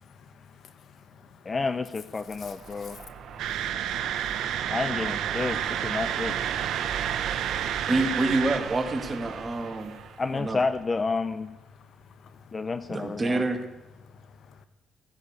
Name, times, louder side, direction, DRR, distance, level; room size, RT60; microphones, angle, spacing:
voice 1, 0.3-1.5 2.3-4.7 7.0-7.3 12.2-12.4 14.5-14.7, left 6 dB, 65° left, 1.3 m, -51 dB
voice 2, 1.5-3.0 4.7-6.4 10.2-11.5 12.5-13.4, left 4 dB, 30° left, 0.7 m, -30 dB
sound 1, 2.3-10.8, right 8 dB, 70° right, 1.0 m, -36 dB
sound 2, 3.4-8.6, right 10 dB, 85° right, 1.3 m, -31 dB
voice 3, 7.9-10.0 10.3-10.6 12.9-13.6, right 2 dB, 25° right, 2.6 m, -27 dB
16.0 x 10.5 x 8.4 m
cardioid pair, 90°, 0 cm